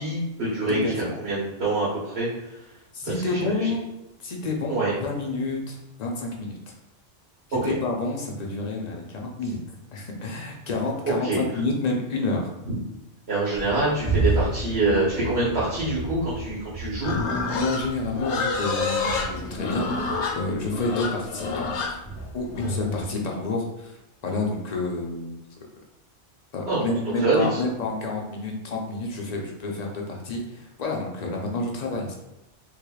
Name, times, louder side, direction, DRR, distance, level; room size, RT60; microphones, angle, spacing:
voice 1, 0.0-2.3 3.2-3.7 4.7-4.9 7.6-7.7 11.0-11.4 13.3-17.1 26.7-26.9 27.2-27.6, right 2 dB, 65° right, -8 dB, 1.3 m, -25 dB
voice 2, 2.9-3.9 4.2-6.7 7.5-9.6 9.9-12.5 17.5-22.0 22.3-24.0 24.2-25.3 26.5-32.2, left 2 dB, 50° left, 0 dB, 0.6 m, -29 dB
sound 1, 13.5-22.5, right 3 dB, 10° right, 0.4 m, -32 dB
Livestock farm animals working animals, 17.0-23.0, left 4 dB, 80° left, 0.9 m, -28 dB
3.4 x 3.2 x 2.3 m, 0.91 s
omnidirectional pair, 1.2 m